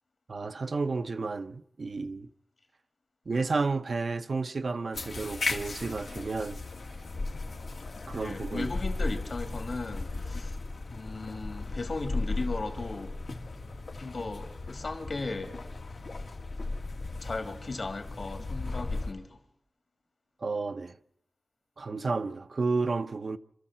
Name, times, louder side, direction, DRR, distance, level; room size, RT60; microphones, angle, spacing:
voice 1, 0.3-2.3 3.3-6.6 8.1-8.7 20.4-21.0 21.8-23.4, right 3 dB, 70° right, 0.7 m, -31 dB
sound 1, 4.9-19.1, left 3 dB, 90° left, 2.2 m, -36 dB
voice 2, 8.2-10.6 10.9-13.2 14.0-15.5 17.2-19.4, left 3 dB, 65° left, 2.7 m, -36 dB
26.5 x 13.5 x 7.5 m
wide cardioid pair, 80°, 0 cm